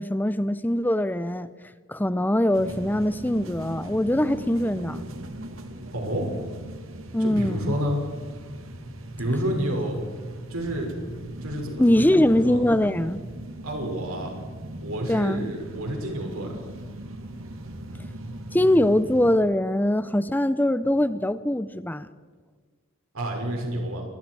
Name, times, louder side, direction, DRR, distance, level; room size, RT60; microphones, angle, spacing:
voice 1, 0.0-1.5 1.9-5.0 7.1-7.7 11.8-13.2 15.1-15.5 18.5-22.1, left 1 dB, 10° left, 0.6 m, -22 dB
sound 1, 2.5-19.4, right 1 dB, 70° right, 2.2 m, -39 dB
voice 2, 5.9-6.3 7.2-8.0 9.2-10.0 10.5-10.9 11.4-12.6 13.6-14.3 14.8-16.6 23.1-24.0, equal, 90° right, 6.1 m, -29 dB
27.5 x 22.0 x 4.8 m
head